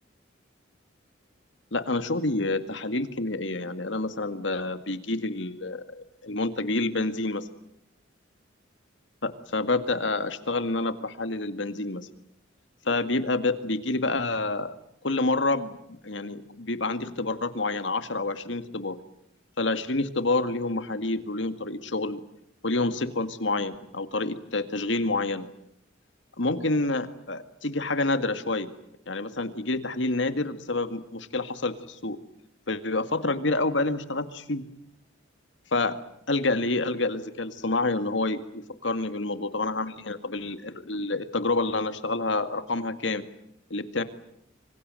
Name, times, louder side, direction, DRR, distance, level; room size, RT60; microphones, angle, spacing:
voice 1, 1.7-7.5 9.2-12.0 12.8-14.7 15.0-19.0 19.6-22.2 22.6-25.5 26.4-28.7 29.1-32.2 32.7-34.7 35.7-36.0 36.3-43.2 43.7-44.0, left 2 dB, 70° left, 10 dB, 2.0 m, -28 dB
26.0 x 25.0 x 7.7 m, 0.76 s
head